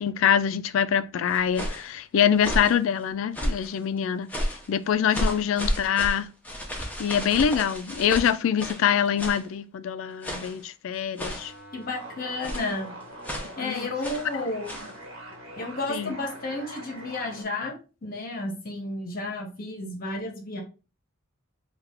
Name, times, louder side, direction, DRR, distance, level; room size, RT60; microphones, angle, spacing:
voice 1, 0.0-6.3 7.0-11.5 13.6-13.9 15.9-16.1, left 8 dB, 70° left, 0.3 m, -25 dB
sound 1, 1.3-1.9 2.4-2.8 3.3-3.7 4.3-4.7 5.1-8.9 9.2-9.5 10.2-10.6 11.2-11.6 12.4-12.8 13.2-13.6 14.0-14.3 14.6-14.9, equal, 10° left, 0.6 m, -32 dB
sound 2, 11.3-17.4, right 1 dB, 70° right, 1.1 m, -43 dB
voice 2, 11.7-13.0 13.6-14.9 15.6-20.6, left 2 dB, 45° left, 0.8 m, -32 dB
3.3 x 2.3 x 3.4 m
head